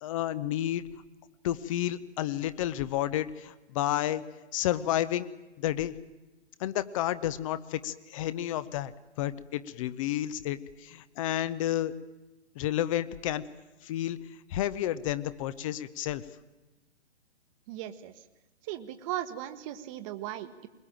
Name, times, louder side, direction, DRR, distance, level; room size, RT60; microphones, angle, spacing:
voice 1, 0.0-0.8 1.4-4.2 4.5-5.3 5.6-5.9 6.6-8.9 9.2-11.9 12.6-13.4 13.8-14.2 14.5-16.2, left 12 dB, 30° left, 15 dB, 0.9 m, -31 dB
voice 2, 17.7-18.1 18.6-20.7, right 12 dB, 30° right, 11 dB, 1.3 m, -37 dB
21.5 x 21.5 x 9.0 m, 1.1 s
figure-of-eight pair, 125°, 34 cm